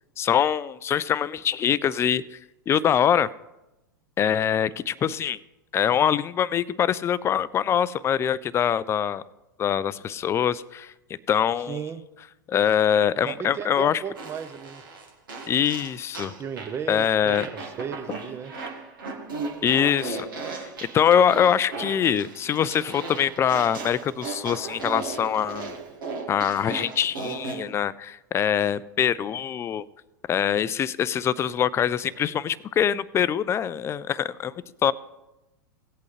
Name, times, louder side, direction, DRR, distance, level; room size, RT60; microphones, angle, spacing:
voice 1, 0.2-2.2 2.7-3.3 4.2-5.4 5.7-9.2 9.6-10.9 11.3-11.8 12.5-14.0 15.5-16.3 16.9-17.5 19.6-20.7 20.9-25.7 26.3-29.8 30.3-34.5 34.8-34.9, left 9 dB, 25° left, 18 dB, 0.4 m, -23 dB
voice 2, 11.7-12.0 13.2-14.8 16.4-18.5, right 7 dB, 25° right, 12 dB, 0.8 m, -35 dB
Fart, 14.2-16.8 17.3-27.6, right 4 dB, 80° right, 1.9 m, -36 dB
17.0 x 8.3 x 3.2 m, 0.96 s
hypercardioid pair, 95°, 11 cm